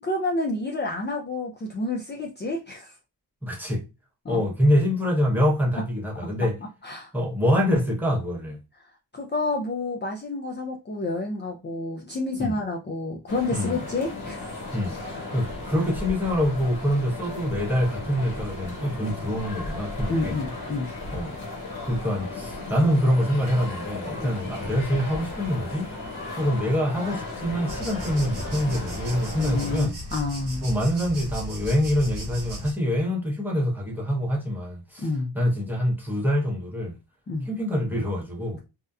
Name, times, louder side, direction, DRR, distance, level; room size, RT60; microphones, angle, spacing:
voice 1, 0.0-3.0 4.2-4.4 6.2-6.3 6.8-7.1 8.8-14.5 20.1-20.9 24.2-24.4 29.4-30.7 35.0-35.3 37.3-37.5, left 2 dB, 30° left, 0.4 m, -29 dB
voice 2, 3.4-3.8 4.3-6.5 7.1-8.6 12.4-12.5 13.5-13.8 14.7-14.9 15.3-20.4 21.1-21.3 21.9-25.9 26.4-29.9 30.6-35.1 35.3-37.0 37.5-38.6, equal, 5° right, 0.8 m, -25 dB
sound 1, 13.3-29.8, left 2 dB, 65° left, 1.1 m, -35 dB
sound 2, 27.7-32.7, equal, 75° right, 0.9 m, -36 dB
2.7 x 2.1 x 2.3 m
wide cardioid pair, 105°, 39 cm